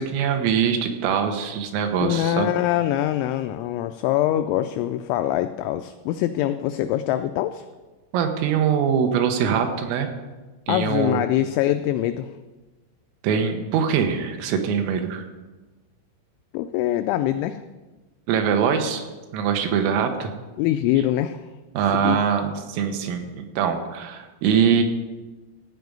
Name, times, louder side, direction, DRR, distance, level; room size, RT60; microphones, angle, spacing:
voice 1, 0.0-2.5 8.1-10.1 10.7-11.2 13.2-15.3 18.3-19.0 19.3-20.3 21.8-24.8, right 7 dB, 80° right, 5 dB, 3.7 m, -23 dB
voice 2, 2.0-7.7 10.7-12.3 16.5-17.6 20.6-21.4 21.9-22.2, left 13 dB, 90° left, 9 dB, 2.6 m, -23 dB
15.5 x 5.1 x 9.3 m, 1.2 s
omnidirectional pair, 5.8 m